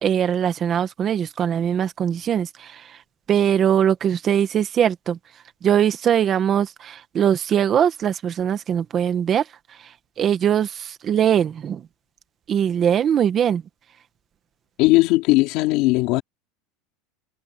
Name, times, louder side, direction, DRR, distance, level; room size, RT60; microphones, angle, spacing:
voice 1, 0.0-2.8 3.3-5.2 5.6-9.4 10.2-11.8 12.5-13.6, right 9 dB, 25° right, 1.5 m, -21 dB
voice 2, 14.8-16.2, left 20 dB, 50° left, 2.8 m, -18 dB
supercardioid pair, 165°, 0 cm